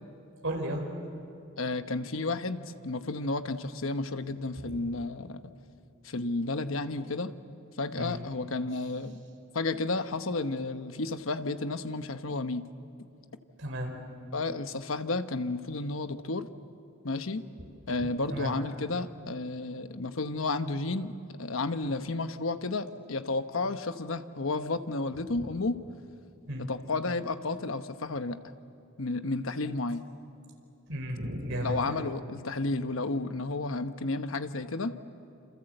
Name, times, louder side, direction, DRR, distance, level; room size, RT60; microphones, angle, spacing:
voice 1, 0.4-0.9 4.6-4.8 8.0-8.2 13.6-14.0 18.0-18.5 21.8-21.9 25.3-25.5 26.5-26.7 30.9-32.1, equal, 70° right, 1 dB, 4.8 m, -34 dB
voice 2, 1.6-5.4 6.0-7.3 7.8-9.2 9.5-12.7 14.3-16.5 17.0-17.4 17.9-25.8 26.6-28.4 29.0-30.0 31.6-35.0, left 3 dB, 80° left, 9 dB, 1.1 m, -32 dB
28.0 x 27.0 x 7.9 m, 2.8 s
head